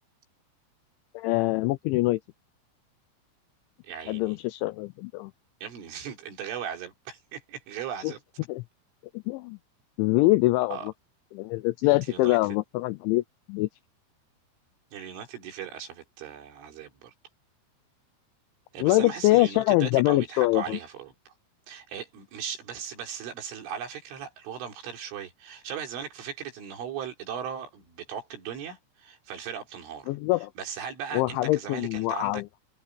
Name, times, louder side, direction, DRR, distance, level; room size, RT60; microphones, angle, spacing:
voice 1, 1.1-2.2 4.1-5.3 8.0-8.1 8.5-8.6 9.3-9.6 10.0-10.8 11.3-13.2 13.5-13.7 18.8-20.8 30.1-30.5 31.1-32.5, left 19 dB, 85° left, 2.7 m, -24 dB
voice 2, 3.8-4.4 5.6-8.2 10.7-10.9 12.1-12.6 14.9-17.1 18.7-21.3 21.7-30.1 30.6-32.4, right 8 dB, 70° right, 6.2 m, -38 dB
omnidirectional pair, 5.9 m